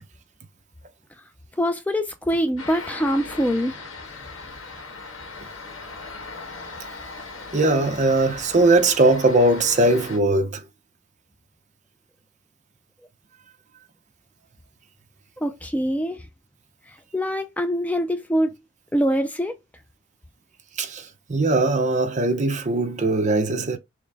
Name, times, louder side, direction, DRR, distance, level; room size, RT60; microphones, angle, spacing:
voice 1, 1.6-3.8 15.4-16.3 16.9-18.6 18.9-19.6, equal, 10° left, 0.3 m, -24 dB
sound 1, 2.6-10.2, left 3 dB, 90° left, 1.4 m, -38 dB
voice 2, 7.5-10.7 20.8-23.8, right 2 dB, 35° right, 0.7 m, -20 dB
6.1 x 2.1 x 3.4 m
head